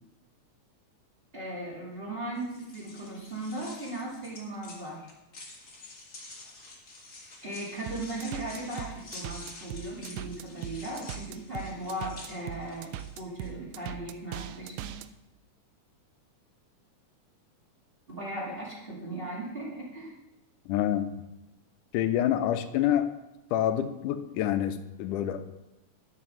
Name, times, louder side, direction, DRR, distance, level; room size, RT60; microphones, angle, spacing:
voice 1, 1.3-5.1 7.4-14.9 18.1-20.1, right 1 dB, 20° right, -6 dB, 2.1 m, -37 dB
sound 1, 2.3-13.5, left 2 dB, 35° left, 1.8 m, -48 dB
sound 2, 7.9-15.1, right 12 dB, 80° right, 1.8 m, -40 dB
voice 2, 20.7-21.1 21.9-23.1 23.5-25.4, left 11 dB, 85° left, 9 dB, 2.2 m, -27 dB
11.5 x 5.6 x 6.2 m, 0.95 s
omnidirectional pair, 3.5 m